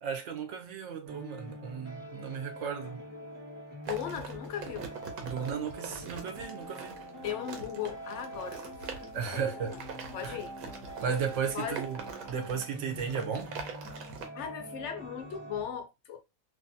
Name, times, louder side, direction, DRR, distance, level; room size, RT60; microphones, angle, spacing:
voice 1, 0.0-3.0 5.2-6.9 9.1-9.8 10.2-10.4 11.0-13.5, right 6 dB, 65° right, 0.9 m, -35 dB
sound 1, 1.1-15.6, equal, 5° right, 1.1 m, -45 dB
voice 2, 3.9-4.9 7.2-9.8 10.1-10.5 11.5-11.8 14.3-16.2, left 9 dB, 65° left, 0.8 m, -38 dB
sound 2, 3.9-14.3, right 5 dB, 85° right, 1.1 m, -43 dB
2.6 x 2.6 x 2.5 m
omnidirectional pair, 1.5 m